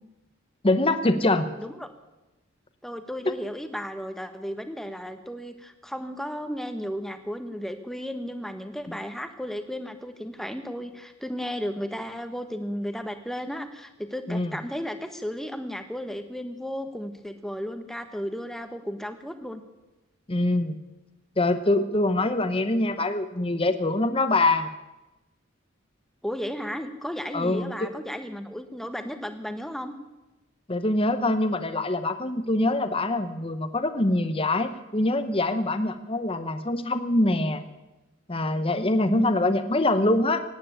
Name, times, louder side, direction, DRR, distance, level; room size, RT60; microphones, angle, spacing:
voice 1, 0.6-1.5 8.9-9.0 14.3-14.5 20.3-20.8 21.4-24.7 27.3-27.9 30.7-37.6 38.3-40.4, left 2 dB, 25° left, 9 dB, 0.9 m, -24 dB
voice 2, 2.8-19.6 26.2-29.9, equal, ahead, 8 dB, 1.1 m, -34 dB
17.0 x 9.5 x 8.8 m, 1.1 s
head